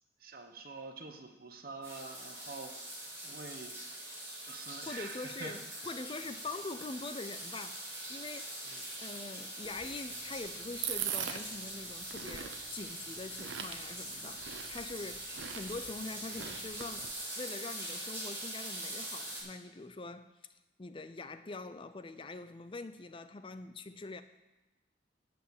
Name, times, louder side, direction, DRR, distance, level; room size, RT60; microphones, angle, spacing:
voice 1, 0.2-3.7 4.4-5.6 8.7-8.9, right 3 dB, 55° right, 5 dB, 1.1 m, -46 dB
sound 1, 1.8-19.4, right 1 dB, 15° right, 4.1 m, -43 dB
voice 2, 4.8-7.8 8.1-8.5 9.0-20.3 20.8-24.2, left 3 dB, 30° left, 11 dB, 0.5 m, -44 dB
sound 2, 9.6-17.1, right 9 dB, 85° right, 0.8 m, -43 dB
11.5 x 5.1 x 8.4 m, 1.0 s
head